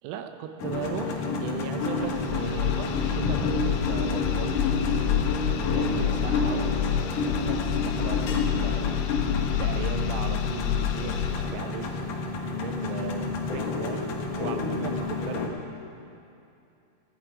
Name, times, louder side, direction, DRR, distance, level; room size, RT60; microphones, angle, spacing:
voice 1, 0.0-4.8 5.5-6.9 7.3-8.9 9.5-12.2 12.6-13.3 13.5-15.5, right 8 dB, 85° right, 7 dB, 3.3 m, -38 dB
sound 1, 0.6-15.5, left 3 dB, 65° left, 2.1 m, -29 dB
sound 2, 1.8-14.8, left 2 dB, 30° left, 3.6 m, -42 dB
sound 3, 2.0-11.6, left 11 dB, 90° left, 3.3 m, -29 dB
18.5 x 10.0 x 4.9 m, 2.6 s
omnidirectional pair, 5.6 m